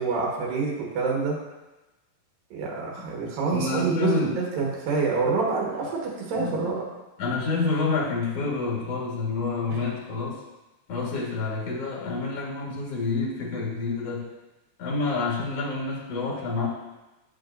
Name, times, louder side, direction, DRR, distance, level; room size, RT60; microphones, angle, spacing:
voice 1, 0.0-1.4 2.5-6.9 9.7-9.8, right 4 dB, 75° right, -2 dB, 3.0 m, -27 dB
voice 2, 3.5-4.4 6.3-6.7 7.2-10.4 10.9-14.3 14.8-16.7, left 3 dB, 50° left, -4 dB, 2.2 m, -28 dB
8.0 x 7.9 x 2.6 m, 1.1 s
omnidirectional pair, 4.1 m